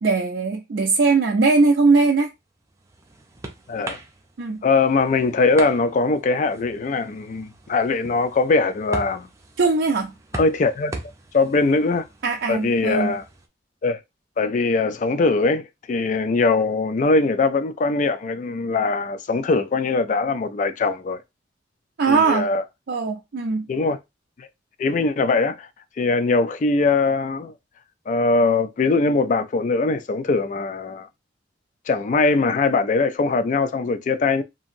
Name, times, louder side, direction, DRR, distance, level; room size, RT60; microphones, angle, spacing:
voice 1, 0.0-2.3 4.4-4.6 9.6-10.1 12.2-13.1 22.0-22.5 22.9-23.6, right 4 dB, 70° right, 0.4 m, -20 dB
sound 1, 2.4-13.5, right 2 dB, 15° right, 0.5 m, -40 dB
voice 2, 3.7-4.0 4.6-9.3 10.3-11.0 11.3-12.1 12.5-13.2 13.8-14.0 14.4-21.2 22.1-22.6 23.7-24.0 24.4-24.5 24.8-25.7 26.0-27.5 28.1-31.1 31.9-34.4, left 3 dB, 45° left, 0.3 m, -21 dB
2.8 x 2.6 x 2.5 m
head